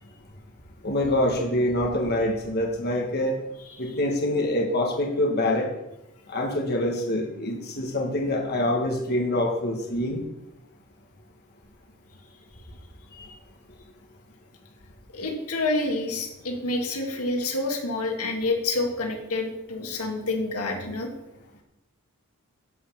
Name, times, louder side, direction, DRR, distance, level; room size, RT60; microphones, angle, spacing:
voice 1, 0.8-3.4 3.8-5.7 6.3-10.2 13.2-13.3, left 1 dB, 45° left, 1 dB, 1.4 m, -25 dB
voice 2, 15.1-21.1, left 2 dB, 85° left, 2 dB, 1.9 m, -28 dB
11.5 x 5.3 x 7.2 m, 0.92 s
head